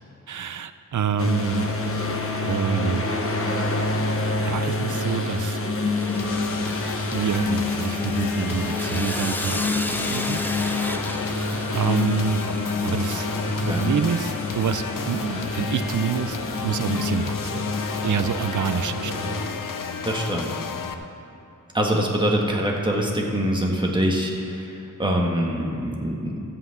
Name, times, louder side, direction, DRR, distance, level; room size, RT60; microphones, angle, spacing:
voice 1, 0.3-1.7 2.4-3.0 4.5-5.6 7.1-9.6 10.1-10.4 11.7-12.4 12.8-13.3 13.6-16.4 16.6-17.7 18.0-19.4, right 7 dB, 70° right, 12 dB, 0.5 m, -27 dB
sound 1, 1.2-19.5, left 2 dB, 45° left, 1.0 m, -27 dB
Sawing, 5.9-16.2, left 1 dB, 5° left, 0.5 m, -36 dB
sound 2, 6.2-20.9, left 6 dB, 90° left, 0.7 m, -34 dB
voice 2, 13.5-13.9 20.0-20.5 21.7-26.4, equal, 15° right, -1 dB, 1.6 m, -24 dB
13.0 x 5.8 x 8.0 m, 2.8 s
wide cardioid pair, 115°, 32 cm